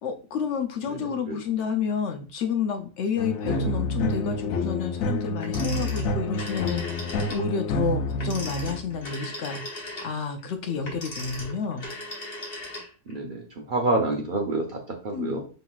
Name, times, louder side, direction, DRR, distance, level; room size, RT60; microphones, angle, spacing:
voice 1, 0.0-11.9 15.1-15.4, left 6 dB, 65° left, 6 dB, 0.8 m, -30 dB
voice 2, 0.9-1.4 3.4-3.7 13.1-15.4, right 2 dB, 50° right, 1 dB, 0.7 m, -28 dB
sound 1, 3.2-9.1, left 1 dB, 90° left, 1.0 m, -28 dB
Telephone, 5.4-7.5 8.1-13.2, left 1 dB, 45° left, 1.4 m, -38 dB
5.7 x 3.0 x 2.3 m, 0.36 s
omnidirectional pair, 1.4 m